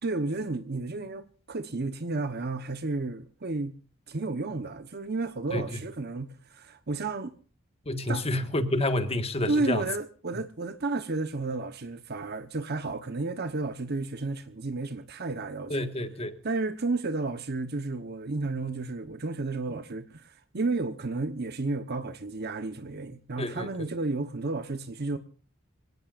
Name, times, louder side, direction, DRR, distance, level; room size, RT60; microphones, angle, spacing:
voice 1, 0.0-3.7 4.1-7.4 8.1-8.2 9.5-15.8 16.4-25.2, right 3 dB, 55° right, 1.1 m, -32 dB
voice 2, 7.8-9.8 15.7-16.4 23.4-23.9, left 1 dB, 30° left, 1.7 m, -29 dB
26.0 x 17.5 x 2.5 m
head